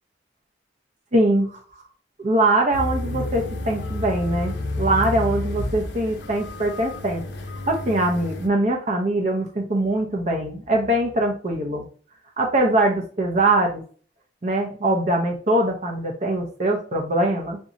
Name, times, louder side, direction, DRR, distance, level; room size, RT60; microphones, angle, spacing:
voice 1, 1.1-1.6 2.2-7.2 7.7-11.8 12.4-13.8 14.4-17.6, right 1 dB, 40° right, 2 dB, 0.7 m, -22 dB
sound 1, 2.7-8.5, left 2 dB, 80° left, 0.6 m, -30 dB
3.7 x 2.7 x 2.9 m, 0.42 s
head